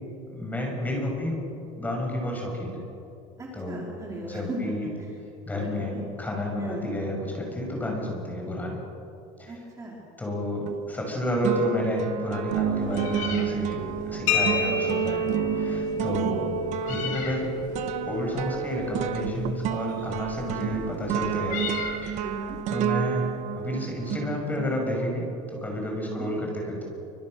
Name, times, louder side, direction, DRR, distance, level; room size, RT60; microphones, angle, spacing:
voice 1, 0.3-2.8 3.5-3.8 4.2-4.9 5.5-8.8 9.4-9.7 10.2-13.8 14.0-16.5 16.9-17.6 18.1-21.6 22.0-22.2 22.7-26.8, left 1 dB, 10° left, 0 dB, 6.1 m, -30 dB
voice 2, 3.4-4.9 5.5-6.0 6.6-6.8 9.5-10.0 15.9-16.5 22.2-22.6 26.0-26.3, right 2 dB, 20° right, -3 dB, 3.4 m, -37 dB
sound 1, 10.7-11.1 11.4-24.9, right 10 dB, 45° right, 1.3 m, -31 dB
Meow, 12.5-22.6, left 5 dB, 50° left, 4.5 m, -40 dB
sound 2, 14.3-21.8, left 1 dB, 85° left, 4.6 m, -31 dB
28.5 x 25.5 x 6.5 m, 2.8 s
cardioid pair, 165°, 17 cm